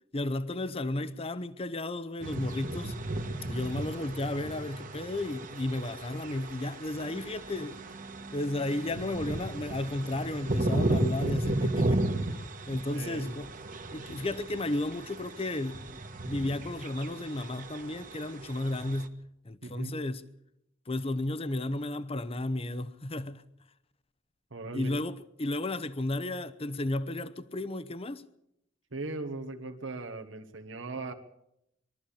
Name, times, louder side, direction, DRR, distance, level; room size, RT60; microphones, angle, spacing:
voice 1, 0.1-3.0 3.4-7.8 8.3-12.1 12.7-13.5 13.9-16.0 16.3-19.2 19.4-20.2 20.9-23.4 24.7-28.2, left 2 dB, 30° left, 0.8 m, -33 dB
sound 1, 2.2-19.1, right 1 dB, 45° right, 1.6 m, -35 dB
voice 2, 12.9-13.3 19.6-20.0 24.5-24.9 28.9-31.1, right 3 dB, 75° right, 1.6 m, -38 dB
23.0 x 13.0 x 8.6 m
head